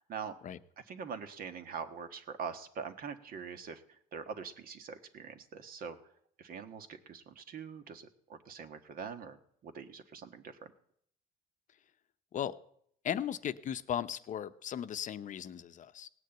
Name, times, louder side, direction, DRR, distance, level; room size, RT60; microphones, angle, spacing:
voice 1, 0.0-0.3 0.8-6.0 6.4-10.6, right 6 dB, 60° right, 9 dB, 1.4 m, -44 dB
voice 2, 13.0-16.1, left 9 dB, 50° left, 11 dB, 0.7 m, -36 dB
18.0 x 6.6 x 8.9 m, 0.67 s
cardioid pair, 110°, 17 cm